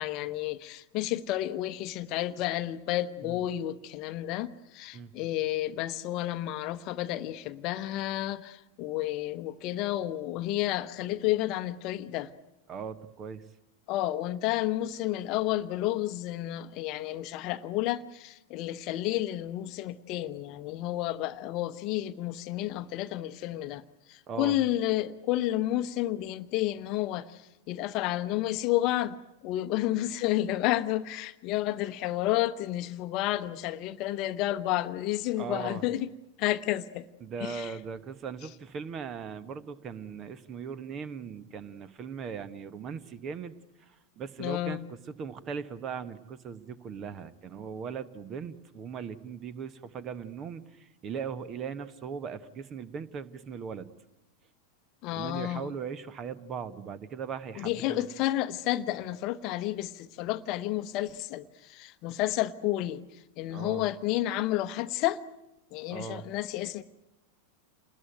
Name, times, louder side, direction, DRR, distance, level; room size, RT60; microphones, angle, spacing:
voice 1, 0.0-12.3 13.9-23.8 24.1-27.4 27.7-29.2 29.4-36.1 36.4-37.0 37.4-37.7 44.4-44.8 55.0-55.7 57.6-63.0 63.4-65.2 65.7-66.8, left 14 dB, 40° left, 0.9 m, -31 dB
voice 2, 12.7-13.4 24.3-24.6 35.4-35.8 37.2-43.5 44.2-53.9 55.1-58.1 63.5-63.8 65.9-66.2, right 6 dB, 30° right, 1.3 m, -39 dB
28.5 x 20.5 x 9.2 m
figure-of-eight pair, 90°, 0 cm